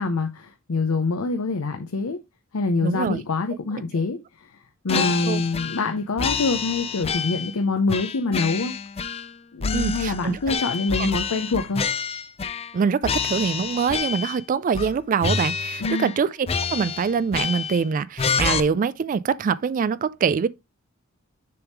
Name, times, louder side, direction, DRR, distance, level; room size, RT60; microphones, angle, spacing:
voice 1, 0.0-2.2 2.5-4.6 4.8-8.7 9.5-11.8 15.8-16.1, left 3 dB, 85° left, 0.7 m, -25 dB
voice 2, 2.8-3.2 5.0-5.4 9.7-10.4 11.0-11.1 12.7-20.5, right 6 dB, 40° right, 0.3 m, -24 dB
sound 1, 4.9-5.9 6.2-7.5 7.9-9.3 9.6-12.8 13.0-14.4 14.7-14.9 15.2-16.2 16.5-17.8 18.2-18.6, left 6 dB, 30° left, 0.4 m, -28 dB
6.8 x 3.5 x 4.5 m
head